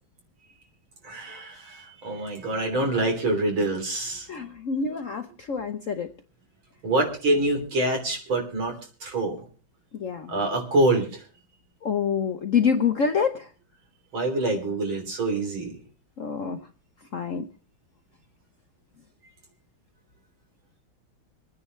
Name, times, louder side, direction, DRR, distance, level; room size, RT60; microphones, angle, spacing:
voice 1, 1.0-4.3 6.8-8.8 9.0-9.4 10.3-11.2 14.1-15.8, right 2 dB, 80° right, 2 dB, 4.0 m, -26 dB
voice 2, 4.3-6.1 9.9-10.3 11.8-13.5 16.2-16.6 17.1-17.5, left 6 dB, 60° left, 6 dB, 0.8 m, -26 dB
26.0 x 9.6 x 3.2 m, 0.36 s
omnidirectional pair, 2.2 m